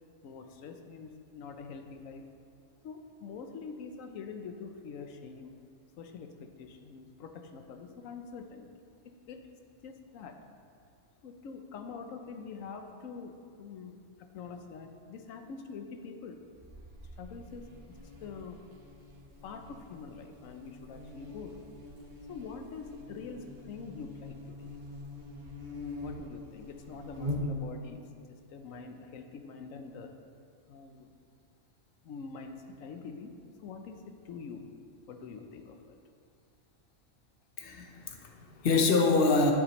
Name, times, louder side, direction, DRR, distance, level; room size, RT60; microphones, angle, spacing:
voice 1, 0.2-2.2 2.8-5.5 6.0-8.7 9.3-9.4 9.8-10.4 11.2-16.4 17.2-18.6 19.4-21.6 22.3-24.7 26.0-30.1 30.7-31.1 32.0-33.3 33.6-34.6 35.1-36.0, left 5 dB, 90° left, 5 dB, 1.1 m, -45 dB
Buzz, 16.6-28.0, left 1 dB, 40° right, 1.1 m, -43 dB
voice 2, 37.6-39.5, left 3 dB, 50° left, 2 dB, 1.0 m, -26 dB
9.6 x 7.5 x 3.1 m, 2.4 s
omnidirectional pair, 1.3 m